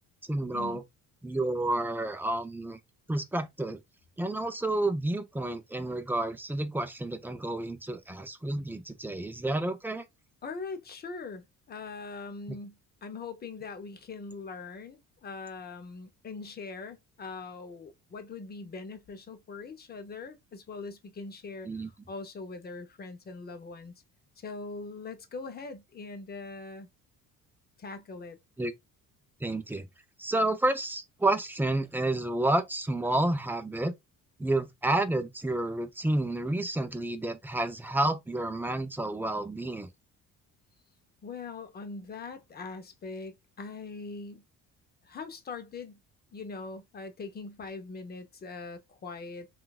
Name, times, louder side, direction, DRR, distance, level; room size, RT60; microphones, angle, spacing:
voice 1, 0.3-0.8 1.2-2.8 3.1-3.8 4.2-10.0 21.6-21.9 28.6-28.7 29.4-29.9 30.2-33.9 34.4-39.9, right 2 dB, 5° right, 0.4 m, -30 dB
voice 2, 10.4-21.7 22.1-23.9 24.4-26.9 27.8-28.4 41.2-44.4 45.0-46.0 46.3-49.5, left 4 dB, 30° left, 0.7 m, -41 dB
3.7 x 2.4 x 2.4 m
cardioid pair, 120°, 34 cm